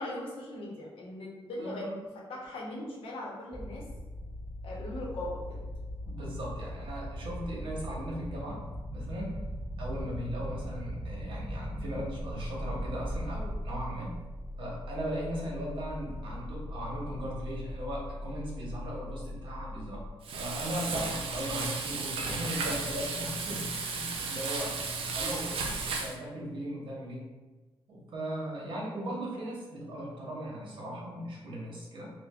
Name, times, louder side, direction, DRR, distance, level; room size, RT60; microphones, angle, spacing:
voice 1, 0.0-1.8 2.3-3.9 4.6-5.6, left 1 dB, 75° left, -3 dB, 0.8 m, -39 dB
voice 2, 1.6-2.0 6.1-8.7 8.9-9.4 9.8-14.1 14.6-20.0 20.4-24.8 25.1-27.2 27.9-32.1, equal, 65° right, -4 dB, 1.0 m, -38 dB
sound 1, 3.5-20.1, equal, 15° left, 0.6 m, -39 dB
Frying (food), 20.2-26.1, right 4 dB, 80° right, 0.5 m, -34 dB
5.0 x 2.2 x 2.3 m, 1.2 s
wide cardioid pair, 130°, 9 cm